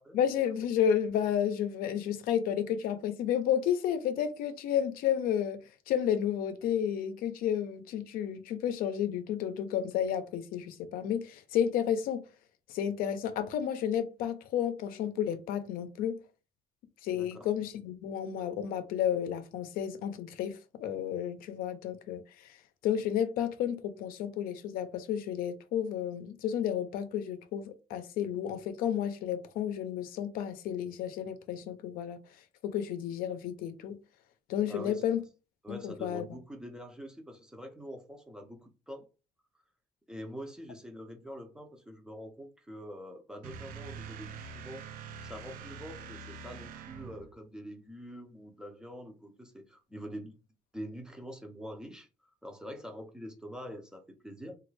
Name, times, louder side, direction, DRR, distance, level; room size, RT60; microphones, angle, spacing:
voice 1, 0.1-5.6 5.9-12.2 12.7-16.2 17.0-22.6 22.8-32.2 32.6-34.0 34.5-35.2 35.7-36.4, left 9 dB, 75° left, 0.5 m, -31 dB
voice 2, 17.1-17.5 34.7-35.0 35.6-39.1 40.1-44.9 45.2-50.3 50.7-54.6, equal, 5° right, 0.5 m, -45 dB
sound 1, 43.4-47.4, right 6 dB, 70° right, 0.5 m, -44 dB
3.1 x 2.3 x 3.2 m
cardioid pair, 160°, 15 cm